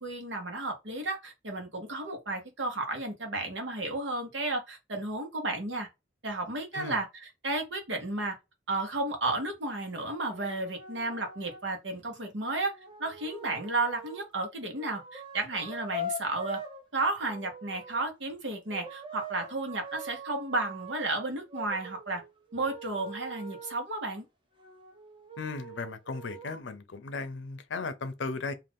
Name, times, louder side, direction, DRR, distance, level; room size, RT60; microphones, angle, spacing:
voice 1, 0.0-5.9 6.2-8.4 8.7-12.7 13.0-16.6 16.9-22.2 22.5-24.2, right 2 dB, 85° right, 1.0 m, -33 dB
sound 1, 9.3-9.5 10.2-11.6 12.5-14.3 14.8-16.8 17.2-18.0 18.7-21.0 21.5-23.8 24.6-26.6, equal, 25° right, 0.7 m, -43 dB
voice 2, 25.4-28.5, left 4 dB, 80° left, 0.6 m, -36 dB
2.5 x 2.4 x 3.4 m
head